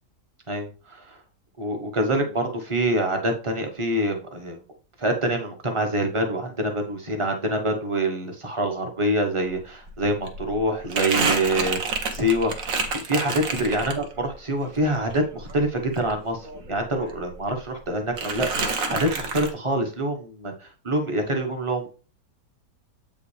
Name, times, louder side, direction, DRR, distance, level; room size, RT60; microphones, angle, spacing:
voice 1, 0.5-1.2 1.6-4.6 5.0-21.9, right 1 dB, 20° right, 3 dB, 1.0 m, -26 dB
Crumpling crinkling, 9.5-9.6 9.9-14.3 14.7-16.8 17.1-17.8 18.2-19.5, right 4 dB, 55° right, 1.3 m, -29 dB
7.8 x 5.4 x 3.3 m, 0.36 s
omnidirectional pair, 1.9 m